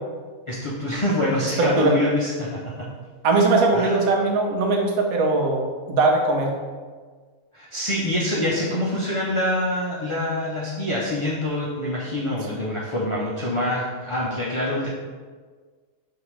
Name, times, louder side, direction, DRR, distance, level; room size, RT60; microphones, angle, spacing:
voice 1, 0.5-2.9 3.7-4.0 7.5-14.9, left 1 dB, 50° left, -6 dB, 0.3 m, -25 dB
voice 2, 1.6-1.9 3.2-6.6, right 3 dB, 85° right, 1 dB, 1.2 m, -20 dB
5.2 x 2.8 x 3.0 m, 1.5 s
omnidirectional pair, 1.4 m